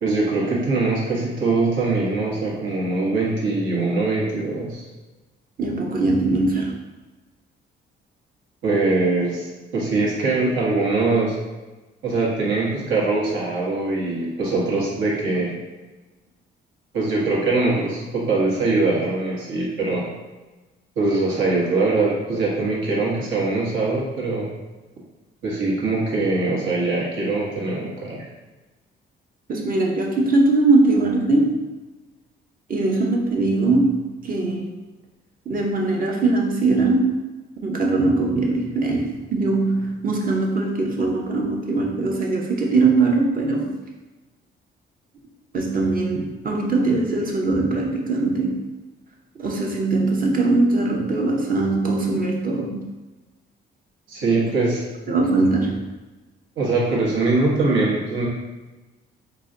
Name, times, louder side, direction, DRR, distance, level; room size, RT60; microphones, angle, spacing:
voice 1, 0.0-4.8 8.6-9.5 9.7-11.3 12.0-15.5 16.9-20.1 21.0-24.5 25.4-28.3 54.1-54.8 56.6-58.3, right 3 dB, 80° right, -5 dB, 1.2 m, -22 dB
voice 2, 5.6-6.8 29.5-31.6 32.7-34.7 35.5-37.2 37.6-43.8 45.5-48.6 49.3-52.8 55.1-55.8, right 3 dB, 45° right, 0 dB, 0.8 m, -21 dB
4.0 x 2.2 x 3.8 m, 1.2 s
cardioid pair, 90°, 20 cm